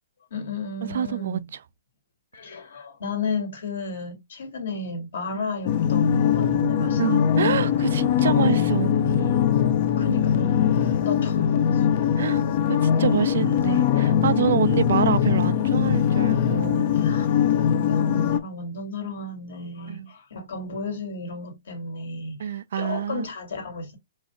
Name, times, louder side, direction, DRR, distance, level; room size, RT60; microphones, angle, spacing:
voice 1, 0.3-1.5 2.3-7.3 10.0-11.9 16.9-17.3 17.7-24.0, left 3 dB, 70° left, 1.8 m, -33 dB
voice 2, 0.8-1.4 5.3-5.5 7.0-9.4 12.2-16.9 19.9-20.1 22.4-23.3, right 9 dB, 70° right, 0.3 m, -27 dB
sound 1, 5.7-18.4, left 9 dB, 45° left, 0.5 m, -21 dB
4.4 x 2.4 x 2.9 m
hypercardioid pair, 140°, 0 cm